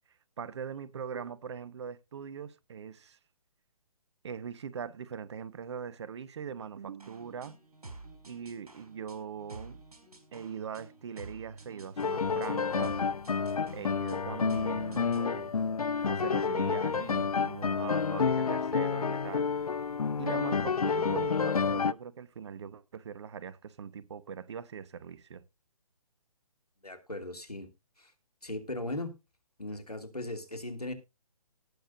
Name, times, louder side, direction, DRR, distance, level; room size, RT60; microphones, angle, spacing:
voice 1, 0.4-3.2 4.2-7.6 8.2-9.8 10.3-13.0 13.7-15.6 16.1-19.5 20.2-25.4, right 7 dB, 45° right, 1.1 m, -41 dB
sound 1, 7.0-15.3, right 2 dB, 80° right, 5.0 m, -50 dB
sound 2, 12.0-21.9, left 5 dB, 75° left, 0.6 m, -29 dB
voice 2, 26.8-27.7 28.0-28.1 28.4-29.1 29.6-30.9, left 1 dB, 90° left, 2.8 m, -38 dB
18.5 x 6.5 x 2.7 m
figure-of-eight pair, 140°, 19 cm